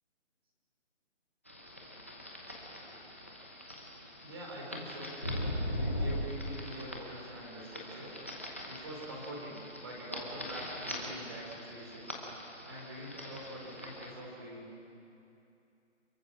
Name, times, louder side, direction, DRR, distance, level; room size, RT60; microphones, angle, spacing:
sound 1, 1.5-14.1, left 1 dB, 10° left, 0.9 m, -41 dB
voice 1, 4.2-5.1 5.8-8.1 8.7-12.2 12.7-14.7, right 1 dB, 20° right, -1 dB, 3.8 m, -45 dB
28.0 x 22.5 x 6.2 m, 2.7 s
hypercardioid pair, 175°, 37 cm